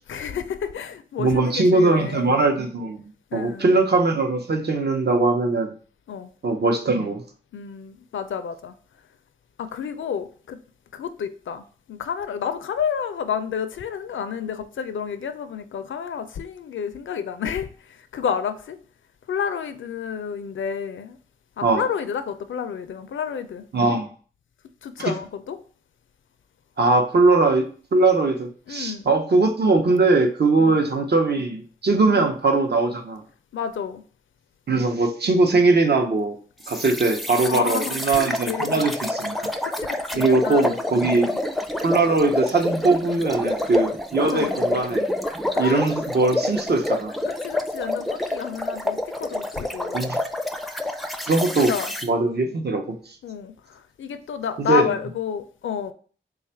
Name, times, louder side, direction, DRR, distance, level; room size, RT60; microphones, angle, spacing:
voice 1, 0.1-2.4 3.3-3.8 6.1-6.3 7.5-8.7 9.6-10.6 10.9-18.8 19.3-21.2 21.6-23.7 24.8-25.6 28.7-29.1 30.6-30.8 32.1-32.3 33.5-34.0 37.5-38.8 39.3-40.7 41.1-41.4 44.2-44.6 45.5-45.9 47.3-50.1 51.5-51.9 53.2-55.9, left 7 dB, 75° left, 0.4 m, -30 dB
voice 2, 1.2-3.0 3.3-5.7 6.4-7.2 21.6-21.8 23.7-24.1 25.0-25.1 26.8-33.2 34.7-36.4 36.7-39.3 40.1-41.3 41.8-45.1 45.6-47.1 49.9-50.2 51.3-51.7 52.0-53.0 54.6-54.8, right 3 dB, 55° right, 0.7 m, -20 dB
sound 1, 36.6-52.1, left 1 dB, ahead, 0.4 m, -28 dB
3.3 x 2.4 x 4.3 m
cardioid pair, 45°, 20 cm